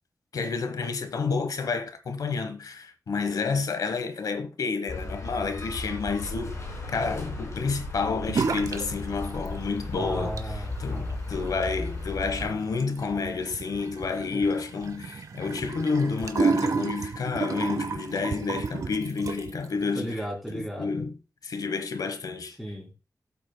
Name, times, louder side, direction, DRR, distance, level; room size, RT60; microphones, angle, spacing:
voice 1, 0.3-6.6 6.9-10.4 10.8-20.2 20.5-21.1 21.4-22.6, left 4 dB, 75° left, 1.1 m, -30 dB
sound 1, 4.9-12.5, left 2 dB, 55° left, 4.8 m, -35 dB
sound 2, 8.3-8.9 9.2-9.8 10.2-19.7, right 4 dB, 65° right, 1.0 m, -31 dB
voice 2, 9.9-11.1 14.3-14.4 19.9-21.0 22.6-22.9, right 1 dB, ahead, 3.1 m, -35 dB
16.0 x 8.0 x 2.2 m
wide cardioid pair, 160°, 6 cm